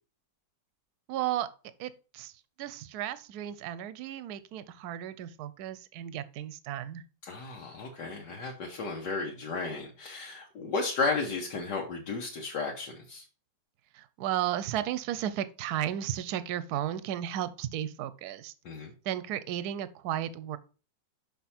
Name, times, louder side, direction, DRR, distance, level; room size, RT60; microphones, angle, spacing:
voice 1, 1.1-1.5 1.8-2.3 2.6-7.0 13.9-18.5 19.0-20.6, right 11 dB, 70° right, 1.1 m, -34 dB
voice 2, 7.2-13.2 18.6-18.9, left 3 dB, 70° left, 1.6 m, -34 dB
6.0 x 5.6 x 4.2 m
omnidirectional pair, 1.9 m